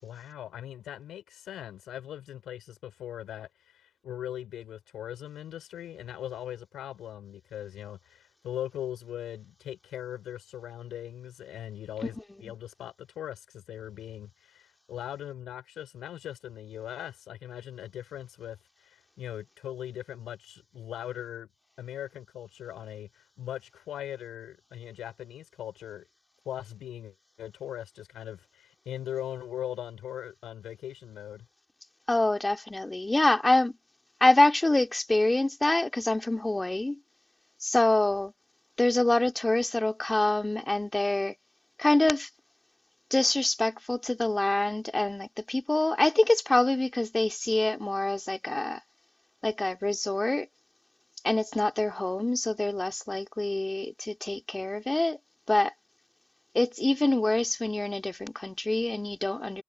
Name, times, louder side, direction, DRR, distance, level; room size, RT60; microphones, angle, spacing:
voice 1, 0.0-21.5 21.8-26.1 26.5-31.5, left 11 dB, 70° left, 5.2 m, -40 dB
voice 2, 32.1-33.7 34.2-37.0 37.6-38.3 38.8-41.3 41.8-42.3 43.1-48.8 49.4-50.5 51.2-55.2 55.5-55.7 56.5-59.6, left 2 dB, 20° left, 2.9 m, -26 dB
hypercardioid pair, 45°, 0 cm